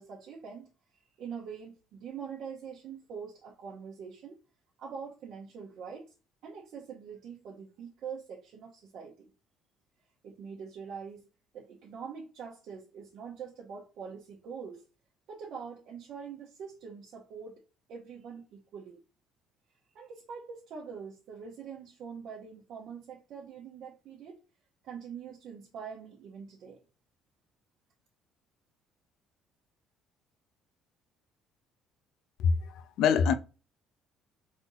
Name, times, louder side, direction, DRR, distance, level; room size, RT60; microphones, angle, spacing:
voice 1, 0.0-4.4 4.8-6.1 6.4-9.3 10.2-11.3 11.5-14.8 15.3-17.6 17.9-19.0 19.9-24.4 24.8-26.8, right 6 dB, 65° right, 0.9 m, -44 dB
voice 2, 32.4-33.3, left 6 dB, 70° left, 0.5 m, -25 dB
4.2 x 2.7 x 3.9 m
cardioid pair, 115°, 0 cm